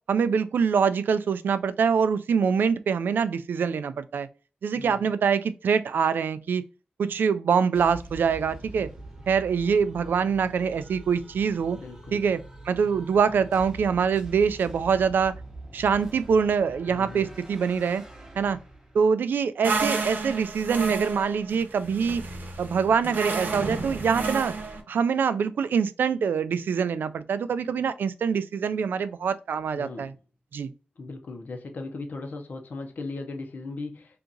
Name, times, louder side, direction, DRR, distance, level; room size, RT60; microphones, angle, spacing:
voice 1, 0.1-4.3 4.6-6.6 7.0-8.9 9.3-11.8 12.1-15.4 15.7-18.0 18.4-18.6 18.9-22.2 22.6-24.5 24.9-30.1 30.5-30.7, right 6 dB, 90° right, 0.3 m, -24 dB
voice 2, 4.7-5.1 11.7-12.2 16.9-17.3 29.7-30.1 31.0-34.2, left 3 dB, 60° left, 0.8 m, -38 dB
sound 1, 7.7-19.1, right 2 dB, 15° right, 0.8 m, -44 dB
sound 2, 19.6-24.8, right 4 dB, 70° right, 0.8 m, -31 dB
2.8 x 2.5 x 3.7 m
wide cardioid pair, 115°, 3 cm